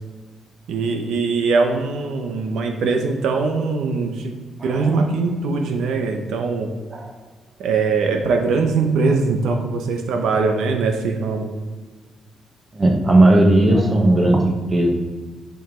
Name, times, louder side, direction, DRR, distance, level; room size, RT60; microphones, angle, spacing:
voice 1, 0.7-4.4 4.6-6.7 7.6-11.5, right 4 dB, 80° right, 4 dB, 1.0 m, -21 dB
voice 2, 4.6-5.0 6.9-7.1 12.7-14.9, right 1 dB, 20° right, 1 dB, 1.2 m, -16 dB
10.5 x 5.2 x 3.8 m, 1.4 s
cardioid pair, 160°, 0 cm